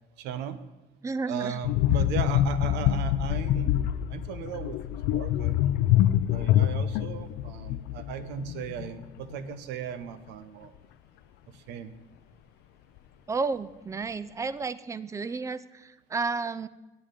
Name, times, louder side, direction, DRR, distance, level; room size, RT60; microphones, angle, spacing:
voice 1, 0.2-0.6 1.3-5.6 6.3-10.7 11.5-11.9, right 9 dB, 90° right, 13 dB, 0.7 m, -37 dB
voice 2, 1.0-1.6 13.3-16.7, right 4 dB, 20° right, 16 dB, 0.4 m, -32 dB
sound 1, 1.6-9.1 9.3-9.5, left 12 dB, 90° left, 0.4 m, -26 dB
9.2 x 8.5 x 5.1 m, 1.1 s
cardioid pair, 110°, 17 cm